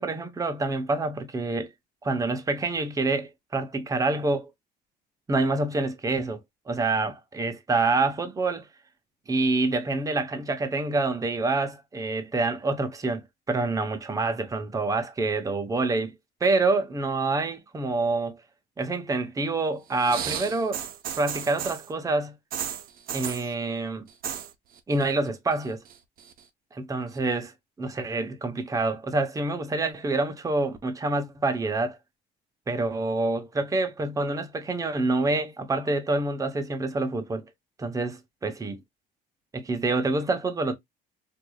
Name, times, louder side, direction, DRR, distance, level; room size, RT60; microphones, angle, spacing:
voice 1, 0.0-1.7 2.0-4.5 5.3-6.4 6.7-8.7 9.3-16.1 16.4-18.4 18.8-20.8 21.2-22.4 23.1-24.1 24.9-25.8 26.7-27.5 27.8-32.0 32.7-37.4 37.8-38.8 39.5-40.8, right 3 dB, 20° right, 0.7 m, -27 dB
sound 1, 19.9-21.9 22.5-23.5 24.1-24.5 24.8-25.3 25.6-26.4 27.2-27.3, right 9 dB, 60° right, 0.6 m, -34 dB
4.7 x 2.6 x 2.2 m
cardioid pair, 110°, 17 cm